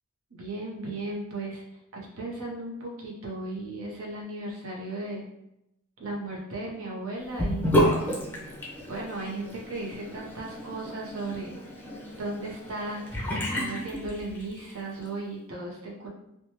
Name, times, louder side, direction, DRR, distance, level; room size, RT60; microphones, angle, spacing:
voice 1, 0.3-1.6 2.2-5.2 6.0-7.7 8.9-11.6 12.2-13.0 13.3-16.1, right 2 dB, 65° right, -2 dB, 0.7 m, -36 dB
Sink (filling or washing) / Bathtub (filling or washing), 7.4-14.7, equal, 10° left, 0.6 m, -30 dB
3.0 x 2.2 x 2.8 m, 0.84 s
head